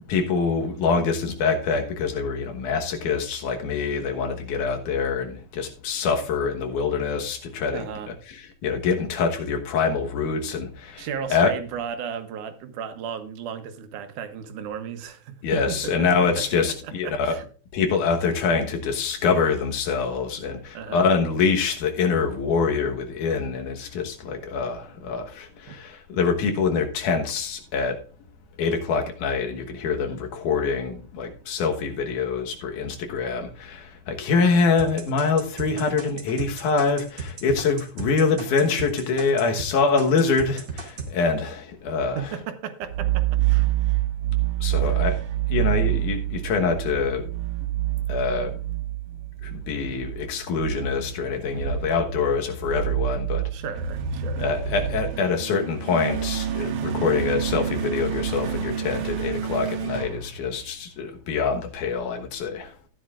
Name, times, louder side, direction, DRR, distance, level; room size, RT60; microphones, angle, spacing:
voice 1, 0.1-11.5 15.4-17.4 17.7-28.0 28.6-42.3 44.6-45.2 45.5-47.3 48.1-48.6 49.4-53.4 54.4-62.7, left 5 dB, 85° left, 2.8 m, -25 dB
voice 2, 7.7-8.1 11.0-17.4 20.7-21.1 42.2-43.7 44.8-44.9 53.5-54.5, right 7 dB, 90° right, 2.5 m, -35 dB
sound 1, 34.8-39.7 40.0-41.1, right 4 dB, 40° right, 2.2 m, -35 dB
sound 2, 42.8-61.0, right 11 dB, 70° right, 2.2 m, -27 dB
13.5 x 10.0 x 2.5 m
omnidirectional pair, 3.4 m